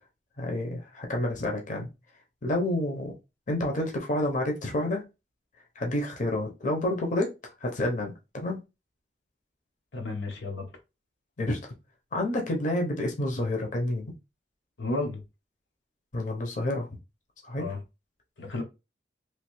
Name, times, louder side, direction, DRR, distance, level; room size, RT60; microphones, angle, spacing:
voice 1, 0.4-1.9 2.4-3.1 3.5-5.0 5.8-8.6 11.4-11.7 12.1-14.1 16.1-16.9 17.4-17.7, left 1 dB, 45° left, 0.8 m, -29 dB
voice 2, 9.9-10.7 14.8-15.2 17.6-17.8 18.4-18.6, left 2 dB, 85° left, 0.9 m, -32 dB
3.2 x 2.6 x 3.0 m
head